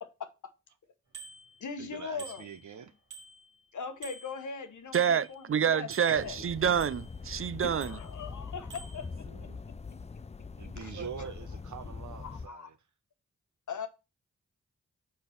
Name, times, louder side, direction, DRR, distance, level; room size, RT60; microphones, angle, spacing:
voice 1, 0.0-0.5 1.6-2.4 3.7-6.4 7.6-9.5 10.8-10.9 12.2-12.7 13.7-13.9, left 5 dB, 75° left, 1.1 m, -40 dB
Bicycle bell, 1.1-1.9 2.2-3.7 4.0-5.6 5.9-7.3 7.8-8.4 8.7-9.1, right 4 dB, 90° right, 2.7 m, -50 dB
voice 2, 1.8-2.9 6.1-6.5 10.6-12.8, right 6 dB, 70° right, 0.9 m, -44 dB
voice 3, 4.9-8.0 11.0-11.1, right 8 dB, 45° right, 0.4 m, -28 dB
sound 1, 6.1-12.5, left 4 dB, 20° left, 0.4 m, -43 dB
5.1 x 4.4 x 5.8 m
cardioid pair, 40°, 30 cm